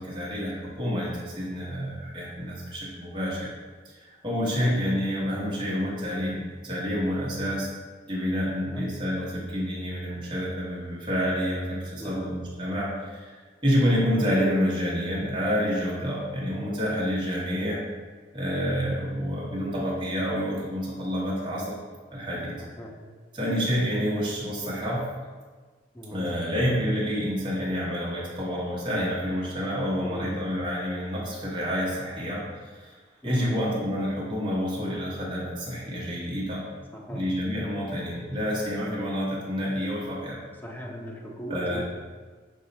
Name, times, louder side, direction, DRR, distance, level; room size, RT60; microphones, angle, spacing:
voice 1, 0.0-3.5 3.8-3.9 4.2-7.7 8.1-17.8 18.3-21.7 22.1-22.6 23.3-25.0 26.1-32.4 32.7-32.9 33.2-36.6 37.1-40.4 41.5-41.8, equal, 25° right, -7 dB, 1.0 m, -28 dB
voice 2, 22.6-23.0 25.9-26.3 30.0-30.3 33.2-33.6 36.9-37.2 40.6-41.8, equal, 10° left, 0 dB, 0.4 m, -39 dB
5.3 x 2.2 x 3.9 m, 1.5 s
head